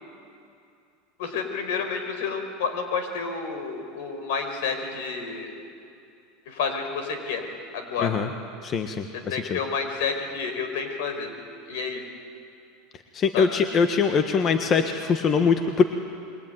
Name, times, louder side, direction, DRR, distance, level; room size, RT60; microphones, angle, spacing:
voice 1, 1.2-5.5 6.5-7.5 7.7-8.2 9.3-11.3 11.7-12.0 13.3-13.5, left 5 dB, 75° left, 6 dB, 5.2 m, -30 dB
voice 2, 8.0-8.3 8.6-9.6 13.1-15.8, left 5 dB, 30° left, 7 dB, 1.5 m, -23 dB
27.0 x 23.0 x 9.6 m, 2.5 s
supercardioid pair, 130°, 0 cm